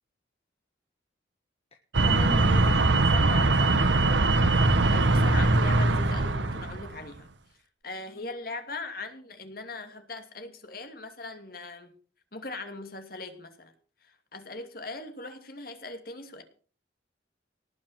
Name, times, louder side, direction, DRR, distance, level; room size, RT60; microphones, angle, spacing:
sound 1, 1.9-7.0, right 2 dB, 75° right, 1.1 m, -22 dB
voice 1, 2.0-4.3, left 1 dB, 30° left, 1.3 m, -38 dB
voice 2, 4.9-7.3 7.8-11.9 12.3-13.7 14.1-16.4, left 3 dB, 50° left, 2.7 m, -40 dB
19.0 x 7.4 x 7.3 m
head